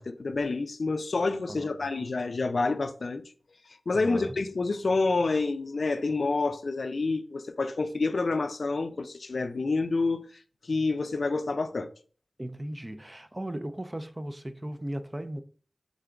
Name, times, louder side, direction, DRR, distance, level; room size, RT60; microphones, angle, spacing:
voice 1, 0.0-3.2 3.9-10.3 10.6-11.9, left 3 dB, 60° left, 0.3 m, -28 dB
voice 2, 1.5-2.0 3.9-4.3 12.4-15.4, right 1 dB, 20° right, 0.4 m, -37 dB
3.7 x 3.6 x 3.4 m
wide cardioid pair, 80°, 0 cm